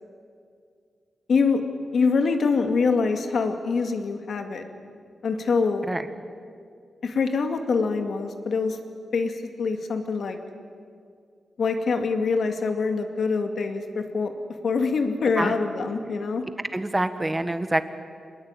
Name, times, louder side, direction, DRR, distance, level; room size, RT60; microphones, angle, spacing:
voice 1, 1.3-1.6 1.9-4.6 5.2-5.9 7.0-8.8 9.1-10.4 11.6-14.3 14.6-16.4, left 4 dB, 65° left, 5 dB, 2.5 m, -24 dB
voice 2, 16.7-17.8, right 1 dB, 15° right, 10 dB, 1.4 m, -26 dB
26.5 x 20.0 x 9.1 m, 2.2 s
wide cardioid pair, 125°, 0 cm